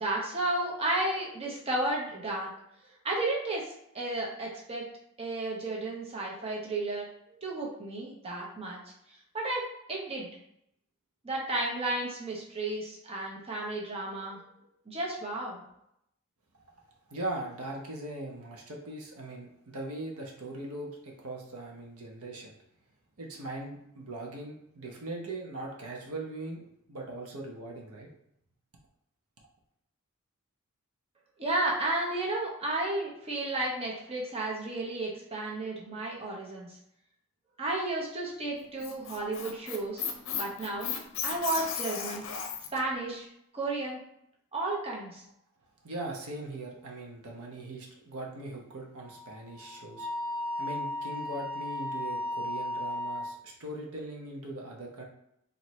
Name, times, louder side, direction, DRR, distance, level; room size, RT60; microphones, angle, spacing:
voice 1, 0.0-2.5 3.0-4.8 5.2-8.8 9.3-9.6 9.9-10.3 11.2-14.4 14.9-15.6 31.4-36.7 37.6-40.1 40.3-40.9 41.2-42.2 42.7-43.3 43.5-44.0 44.5-45.2, right 2 dB, 30° right, -3 dB, 0.9 m, -33 dB
voice 2, 17.1-22.5 23.2-26.6 26.9-28.1 45.8-50.1 50.6-55.0, right 2 dB, 90° right, 0 dB, 0.9 m, -40 dB
Squeak, 38.6-42.8, left 7 dB, 60° left, 0.6 m, -35 dB
Wind instrument woodwind instrument, 49.0-53.3, left 1 dB, 65° right, 1.5 m, -35 dB
4.4 x 2.7 x 3.1 m, 0.76 s
head